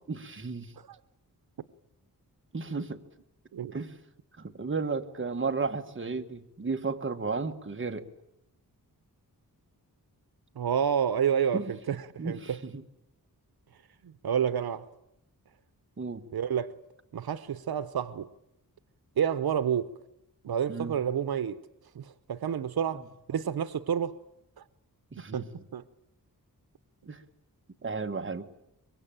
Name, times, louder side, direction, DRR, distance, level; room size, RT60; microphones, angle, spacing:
voice 1, 0.1-0.7 2.5-3.0 3.7-3.9 4.4-8.0 11.5-11.7 12.2-12.8 16.0-16.2 20.7-21.0 22.9-23.0 25.1-25.5 27.1-27.2 27.8-28.5, right 4 dB, 35° right, 1.6 m, -33 dB
voice 2, 10.6-12.6 14.2-14.8 16.3-16.7 17.1-18.3 19.2-19.9 20.4-21.6 21.9-23.0 23.3-24.1 25.2-25.5 25.7-25.8, right 8 dB, 85° right, 0.9 m, -29 dB
24.5 x 23.0 x 8.9 m
wide cardioid pair, 105°, 36 cm